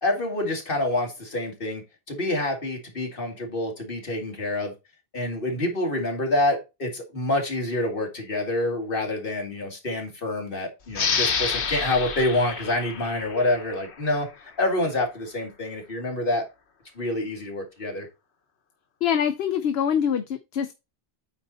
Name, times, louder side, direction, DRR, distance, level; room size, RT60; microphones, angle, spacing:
voice 1, 0.0-4.7 5.1-14.3 14.6-16.4 17.0-18.1, left 1 dB, 55° left, 2.2 m, -27 dB
sound 1, 10.9-14.2, left 6 dB, 90° left, 1.4 m, -29 dB
voice 2, 19.0-20.7, left 8 dB, 70° left, 0.9 m, -24 dB
8.7 x 4.2 x 4.0 m
omnidirectional pair, 1.1 m